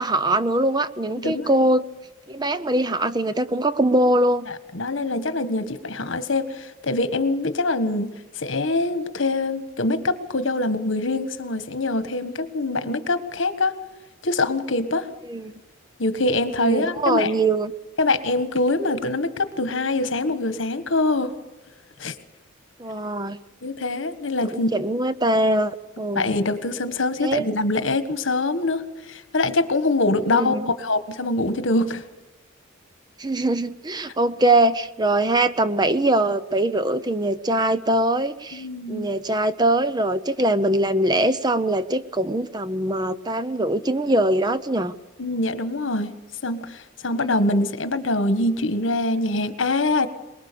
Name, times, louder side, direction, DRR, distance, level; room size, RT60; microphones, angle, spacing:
voice 1, 0.0-1.8 2.3-4.5 15.3-15.5 16.6-17.7 22.8-23.4 24.5-26.4 27.2-27.4 30.3-30.7 33.2-44.9 47.5-47.6, right 1 dB, 20° right, 13 dB, 0.7 m, -22 dB
voice 2, 1.1-1.6 4.5-13.7 14.2-15.1 16.0-17.3 18.0-21.3 22.0-22.1 23.6-24.7 26.1-32.0 38.5-39.1 45.2-46.1 46.4-50.1, left 2 dB, 75° left, 11 dB, 1.5 m, -24 dB
23.5 x 21.0 x 6.9 m, 1.0 s
head